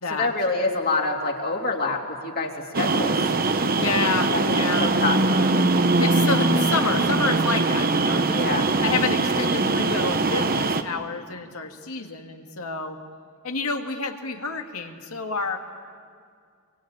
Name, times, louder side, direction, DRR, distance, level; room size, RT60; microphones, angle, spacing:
voice 1, 0.1-2.5 2.8-3.2 4.3-5.2 8.3-8.6, left 3 dB, 45° left, 0 dB, 2.9 m, -26 dB
sound 1, 2.7-10.8, right 3 dB, 45° right, 1.0 m, -22 dB
voice 2, 3.8-4.9 6.0-8.4 8.8-13.0 13.4-15.6, left 4 dB, 85° left, 4 dB, 2.1 m, -29 dB
25.0 x 23.5 x 8.9 m, 2.2 s
head